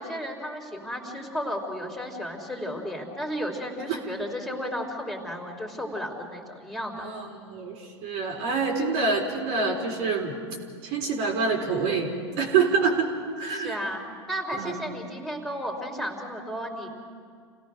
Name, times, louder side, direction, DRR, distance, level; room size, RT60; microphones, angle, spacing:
voice 1, 0.0-7.1 13.5-14.0 14.3-16.9, equal, ahead, 1 dB, 3.6 m, -33 dB
voice 2, 7.0-10.3 10.8-13.1 13.4-13.8 14.6-14.8, right 4 dB, 60° right, 1 dB, 4.0 m, -26 dB
28.0 x 17.0 x 6.4 m, 2.1 s
hypercardioid pair, 90°, 15 cm